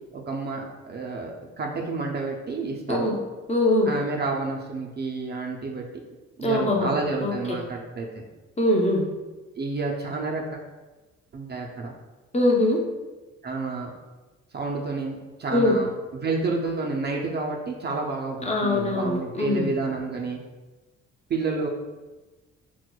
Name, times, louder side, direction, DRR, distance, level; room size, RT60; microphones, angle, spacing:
voice 1, 0.1-3.2 3.9-5.9 6.4-8.3 9.6-10.6 11.3-11.9 13.4-13.9 14.5-20.4 21.3-21.7, right 3 dB, 35° right, 0 dB, 0.4 m, -30 dB
voice 2, 3.5-3.9 6.4-6.9 7.2-7.6 8.6-9.1 12.3-12.8 15.5-15.8 18.5-19.7, left 1 dB, 20° left, -1 dB, 0.5 m, -22 dB
4.3 x 2.0 x 2.2 m, 1.2 s
cardioid pair, 90°, 30 cm